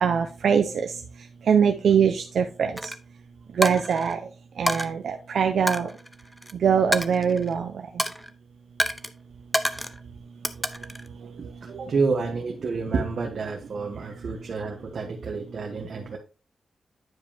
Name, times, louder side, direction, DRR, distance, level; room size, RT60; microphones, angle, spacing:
voice 1, 0.0-0.9 1.5-2.7 3.6-4.2 4.6-5.9 6.6-7.7, right 7 dB, 85° right, 5 dB, 0.6 m, -22 dB
Coin (dropping), 2.8-3.0 3.6-4.2 4.7-4.9 5.7-6.5 6.9-7.6 8.0-8.3 8.8-9.1 9.5-10.0 10.4-11.1, equal, ahead, 0.6 m, -28 dB
voice 2, 11.4-16.2, right 4 dB, 60° right, 1 dB, 1.2 m, -29 dB
9.4 x 5.1 x 3.4 m, 0.34 s
wide cardioid pair, 140°, 0 cm